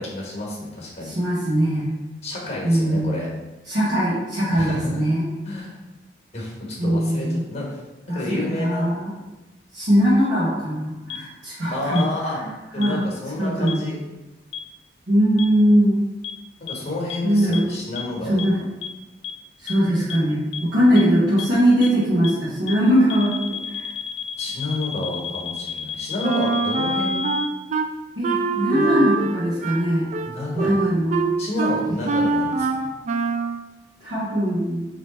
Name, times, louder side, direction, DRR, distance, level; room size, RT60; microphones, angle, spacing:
voice 1, 0.0-1.2 2.2-3.3 4.5-5.0 5.4-5.8 6.3-7.8 8.1-8.9 11.7-12.4 12.7-14.0 16.6-18.4 24.4-27.2 28.7-29.0 30.2-31.0 31.4-32.9, left 2 dB, 40° left, -3 dB, 1.2 m, -30 dB
voice 2, 1.0-1.9 2.6-3.1 3.7-5.3 6.8-7.4 8.1-9.1 9.7-12.5 12.8-13.0 13.4-13.8 15.1-16.0 17.2-17.8 18.2-18.6 19.6-23.9 28.2-30.1 30.5-31.2 34.0-34.9, equal, 75° right, -10 dB, 1.1 m, -21 dB
sound 1, 11.1-11.2 12.0-12.1 12.8-12.9 13.7-13.8 14.5-14.6 15.4-15.5 16.2-16.3 16.7-16.8 17.1-17.2 17.5-17.6 18.0-18.1 18.4-18.5 18.8-18.9 19.2-19.3 19.7-19.8 20.1-20.2 20.5-20.6 21.0-21.1 21.4-21.5 21.8-21.9 22.2-22.3 22.7-22.8 23.1-27.5, left 7 dB, 75° left, 0.3 m, -31 dB
Wind instrument woodwind instrument, 26.2-27.9 28.2-33.6, right 3 dB, 40° right, 0.3 m, -24 dB
3.3 x 2.9 x 4.2 m, 1.1 s
head